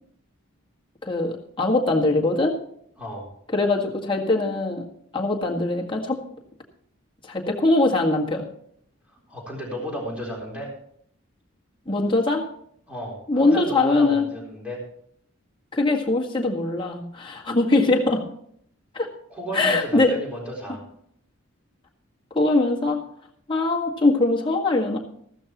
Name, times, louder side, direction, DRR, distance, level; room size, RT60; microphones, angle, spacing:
voice 1, 1.0-2.5 3.5-4.8 5.1-6.2 7.2-8.5 11.9-12.5 13.3-14.3 15.7-18.2 18.9-19.1 19.5-20.1 22.4-23.0 23.5-25.0, left 2 dB, 25° left, -1 dB, 1.8 m, -22 dB
voice 2, 3.0-3.3 9.1-10.7 12.9-14.8 19.3-20.8, equal, 5° right, -3 dB, 4.0 m, -33 dB
15.0 x 13.5 x 3.0 m, 0.66 s
head